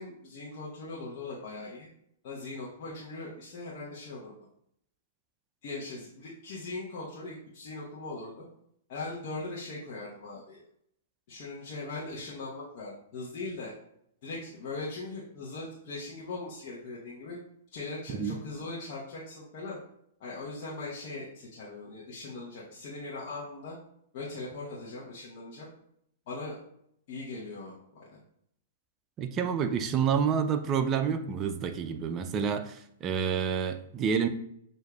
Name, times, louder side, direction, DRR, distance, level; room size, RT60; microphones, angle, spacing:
voice 1, 0.0-1.9 2.2-4.3 5.6-8.4 8.9-10.6 11.3-13.7 14.2-17.4 17.7-19.8 20.2-23.8 24.1-25.7 26.3-26.6 27.1-28.2, left 3 dB, 55° left, -6 dB, 1.0 m, -40 dB
voice 2, 29.2-34.3, right 7 dB, 30° right, 8 dB, 0.4 m, -28 dB
6.6 x 2.7 x 2.3 m, 0.74 s
hypercardioid pair, 120°, 0 cm